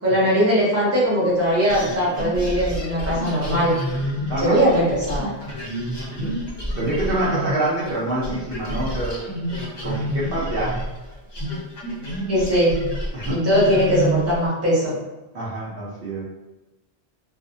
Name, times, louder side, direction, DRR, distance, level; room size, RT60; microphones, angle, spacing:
voice 1, 0.0-3.7 4.4-5.3 12.3-12.7 13.3-14.9, equal, 15° right, -8 dB, 0.8 m, -20 dB
sound 1, 1.7-14.4, equal, 35° left, 0.4 m, -29 dB
voice 2, 4.3-4.7 6.1-6.4 6.8-9.3 9.8-10.9 13.1-13.4 15.3-16.2, right 1 dB, 65° right, -6 dB, 0.8 m, -26 dB
2.6 x 2.0 x 2.6 m, 1.0 s
omnidirectional pair, 1.1 m